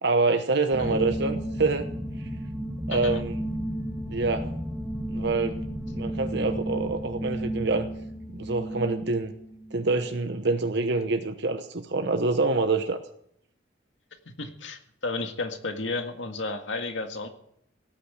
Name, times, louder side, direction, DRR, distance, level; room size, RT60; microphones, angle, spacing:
voice 1, 0.0-1.9 2.9-3.3 4.1-4.5 5.1-7.9 8.3-9.3 9.7-13.0, right 3 dB, 65° right, 7 dB, 1.0 m, -26 dB
sound 1, 0.7-10.2, right 1 dB, 10° right, 1.6 m, -33 dB
voice 2, 14.4-17.3, left 3 dB, 80° left, 5 dB, 2.0 m, -33 dB
17.5 x 8.8 x 8.1 m, 0.72 s
head